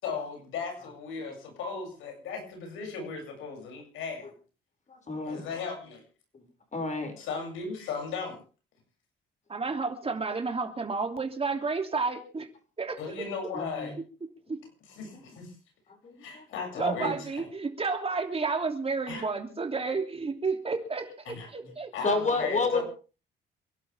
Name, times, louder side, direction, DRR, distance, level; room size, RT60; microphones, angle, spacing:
voice 1, 0.0-4.3 5.2-6.0 7.2-8.4 13.0-13.9 14.9-15.5 16.2-17.5 19.1-19.3 21.3-21.5 21.9-22.8, left 5 dB, 90° left, 3 dB, 7.6 m, -36 dB
voice 2, 4.9-5.4 6.3-6.4 6.7-7.1 13.5-13.9 15.1-15.2 16.0-16.4 16.7-17.2 22.0-22.8, left 3 dB, 35° left, 5 dB, 6.3 m, -30 dB
voice 3, 9.5-12.5 12.8-13.2 14.5-14.6 16.8-21.9, right 4 dB, 30° right, 5 dB, 3.0 m, -31 dB
27.5 x 12.0 x 3.6 m, 0.35 s
cardioid pair, 90°, 20 cm